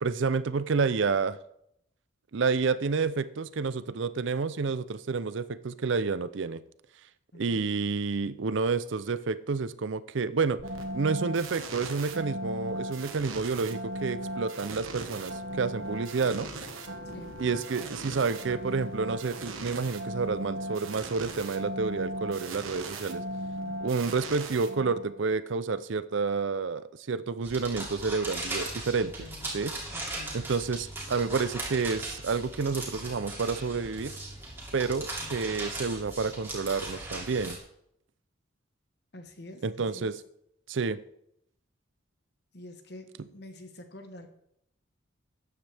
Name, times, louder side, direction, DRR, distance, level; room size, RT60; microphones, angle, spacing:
voice 1, 0.0-1.4 2.3-6.6 7.3-10.6 10.9-16.5 17.4-23.2 23.8-29.1 29.5-29.7 30.3-34.1 34.7-37.6 39.6-40.2 40.7-41.0, right 4 dB, 65° right, 16 dB, 0.5 m, -29 dB
sound 1, 10.6-25.2, right 1 dB, 85° right, 1.4 m, -38 dB
sound 2, 27.4-37.6, right 2 dB, 10° right, 2.6 m, -38 dB
voice 2, 29.9-30.5 35.2-35.3 39.1-40.1 42.5-44.3, left 1 dB, 55° left, 6 dB, 1.3 m, -47 dB
13.0 x 9.4 x 3.4 m, 0.74 s
head